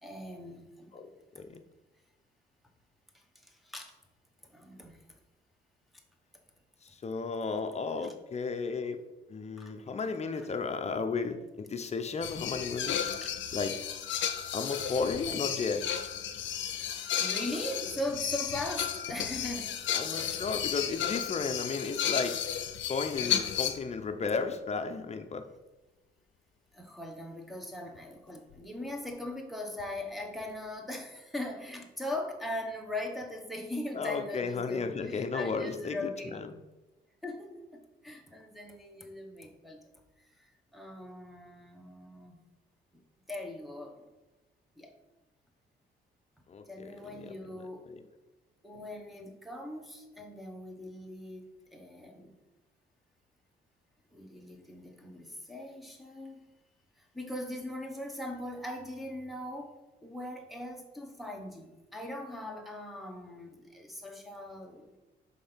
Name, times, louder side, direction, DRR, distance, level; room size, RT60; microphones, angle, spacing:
voice 1, 0.0-1.0 3.1-3.9 4.5-5.0 9.6-9.7 10.3-10.5 13.2-13.3 14.2-14.3 15.3-15.4 16.9-19.8 26.7-36.4 37.2-39.9 40.4-42.4 43.3-44.1 44.8-44.9 46.7-47.9 48.6-52.3 54.1-56.4 57.0-59.7 60.0-64.9, left 1 dB, ahead, 0 dB, 1.1 m, -40 dB
voice 2, 6.8-9.0 9.3-13.2 13.5-13.7 14.5-15.9 19.9-22.4 22.9-25.4 33.9-36.5 46.5-48.0, left 4 dB, 35° left, 7 dB, 0.7 m, -34 dB
sound 1, 12.2-23.8 28.0-28.1 28.5-28.6 29.8-29.9, left 9 dB, 70° left, 0.7 m, -33 dB
5.3 x 3.9 x 5.6 m, 1.1 s
cardioid pair, 90°, 20 cm